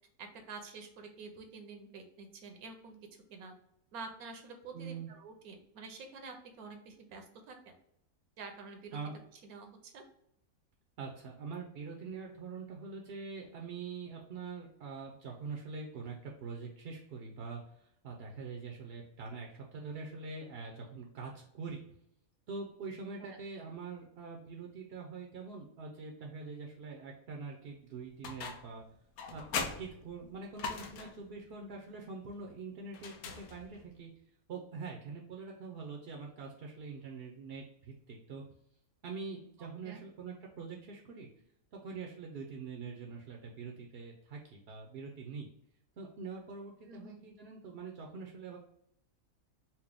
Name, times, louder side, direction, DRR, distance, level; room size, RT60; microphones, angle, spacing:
voice 1, 0.2-3.0 3.3-3.5 3.9-7.8 8.4-9.0 9.4-10.0 23.2-23.4 39.8-40.0 46.9-47.2, right 4 dB, 80° right, 5 dB, 1.2 m, -48 dB
voice 2, 4.7-5.1 8.9-9.1 11.0-21.8 22.5-28.8 29.3-34.1 34.5-38.4 39.0-41.3 41.7-45.5 46.0-48.6, right 4 dB, 60° right, 0 dB, 0.7 m, -44 dB
sound 1, 28.2-28.8 29.2-31.3 32.9-33.9, left 5 dB, 80° left, 1.1 m, -40 dB
4.4 x 2.1 x 3.3 m, 0.74 s
omnidirectional pair, 1.5 m